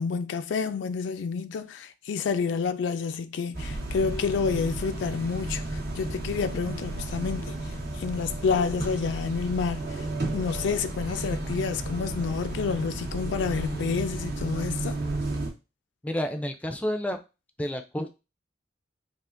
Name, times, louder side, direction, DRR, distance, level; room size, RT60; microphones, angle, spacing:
voice 1, 0.0-10.1 10.3-15.0, left 5 dB, 85° left, 0.3 m, -29 dB
sound 1, 3.5-15.5, right 2 dB, 60° right, 0.9 m, -33 dB
voice 2, 16.0-17.2 17.6-18.2, left 1 dB, 10° left, 0.3 m, -30 dB
3.5 x 2.4 x 2.5 m
head